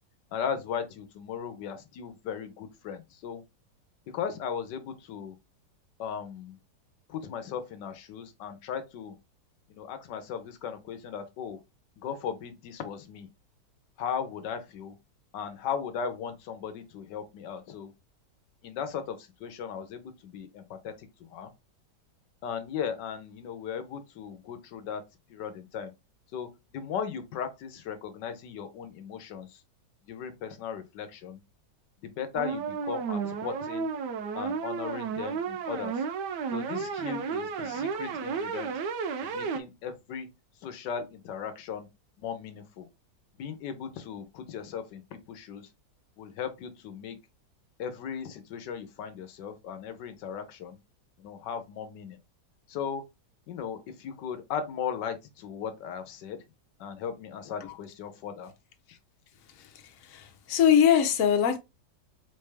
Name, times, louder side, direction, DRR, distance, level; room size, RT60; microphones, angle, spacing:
voice 1, 0.3-3.4 4.1-5.4 6.0-6.6 7.1-9.1 9.7-11.6 12.0-13.3 14.0-14.9 15.3-17.9 18.6-21.5 22.4-25.0 25.3-25.9 26.3-29.6 30.1-31.4 32.0-33.9 34.3-36.0 36.5-38.7 39.2-40.3 40.6-41.9 42.2-42.9 43.4-45.7 46.2-47.2 47.8-50.8 51.2-52.2 52.7-53.1 53.5-56.4 56.8-58.5, left 7 dB, 80° left, 1.3 m, -37 dB
sound 1, 32.3-39.6, right 6 dB, 75° right, 1.2 m, -32 dB
voice 2, 60.1-61.6, left 9 dB, 60° left, 1.0 m, -22 dB
4.0 x 3.2 x 3.3 m
omnidirectional pair, 1.9 m